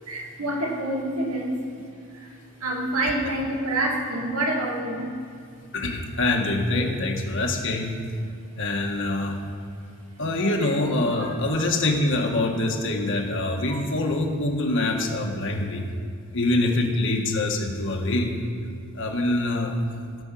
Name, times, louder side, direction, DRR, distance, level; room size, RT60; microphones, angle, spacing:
voice 1, 0.0-5.1 10.4-10.7 11.1-11.7 13.7-13.8, right 1 dB, 75° right, 0 dB, 2.3 m, -28 dB
voice 2, 5.7-8.0 8.6-9.4 10.2-15.8 16.3-18.3 18.9-19.8, left 2 dB, 55° left, 1 dB, 1.6 m, -25 dB
16.5 x 6.3 x 7.6 m, 2.3 s
head